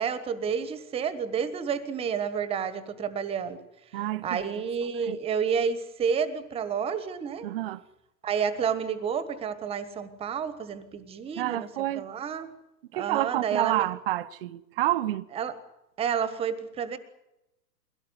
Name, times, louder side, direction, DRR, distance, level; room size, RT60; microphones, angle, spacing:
voice 1, 0.0-3.6 4.2-7.5 8.2-11.7 11.9-12.5 12.9-13.8 15.3-15.5 16.0-17.0, right 7 dB, 10° right, 1.3 m, -30 dB
voice 2, 3.9-4.7 5.0-5.2 7.4-7.8 11.4-12.1 12.9-15.3, right 15 dB, 35° right, 0.8 m, -29 dB
22.5 x 17.0 x 9.6 m
hypercardioid pair, 140°, 50 cm